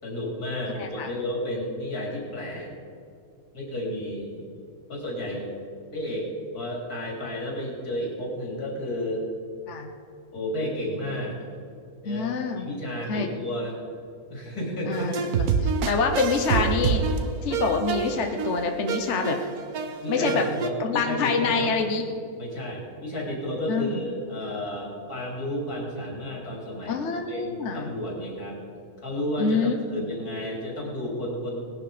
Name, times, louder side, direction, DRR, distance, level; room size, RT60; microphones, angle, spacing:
voice 1, 0.0-2.7 3.5-4.3 4.9-5.5 5.9-9.3 10.3-11.4 12.0-12.2 12.6-13.8 14.3-15.1 15.4-15.6 20.0-21.7 22.4-27.0 27.3-28.6 29.0-31.6, equal, 85° left, -2 dB, 3.7 m, -32 dB
voice 2, 0.7-1.1 9.7-9.9 12.0-12.7 13.1-13.3 14.9-17.0 17.4-19.4 20.1-20.4 20.8-22.0 23.7-24.0 26.9-27.9 29.4-30.1, left 4 dB, 55° left, 3 dB, 1.3 m, -26 dB
sound 1, 14.9-20.7, right 5 dB, 80° right, 1.4 m, -27 dB
18.0 x 11.5 x 5.1 m, 2.5 s
omnidirectional pair, 1.6 m